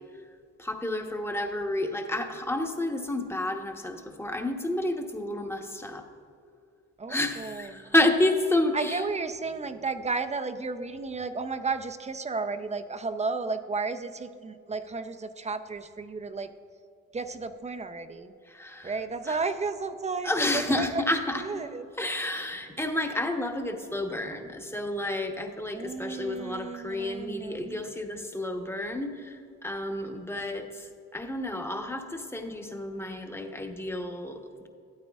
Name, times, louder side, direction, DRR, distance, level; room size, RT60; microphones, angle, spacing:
voice 1, 0.6-6.0 7.1-9.0 18.5-18.9 19.3-19.4 20.2-21.6 22.0-34.7, left 1 dB, 10° left, 4 dB, 0.9 m, -30 dB
voice 2, 7.0-7.9 8.7-16.5 17.1-18.3 18.8-21.0 21.4-21.9 25.7-27.8, right 4 dB, 25° right, 9 dB, 0.5 m, -33 dB
13.0 x 8.8 x 2.3 m, 2.4 s
cardioid pair, 90°, 30 cm